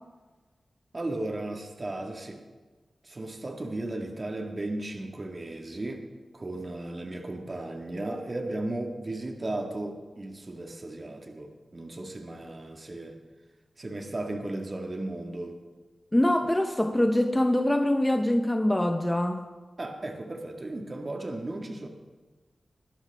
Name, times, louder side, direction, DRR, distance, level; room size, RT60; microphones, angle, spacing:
voice 1, 0.9-2.4 3.0-6.1 6.3-13.2 13.8-15.6 19.8-21.9, right 2 dB, 40° right, 2 dB, 1.9 m, -35 dB
voice 2, 16.1-19.5, left 1 dB, 15° left, 5 dB, 1.0 m, -24 dB
21.0 x 12.0 x 3.6 m, 1.3 s
cardioid pair, 55°, 0 cm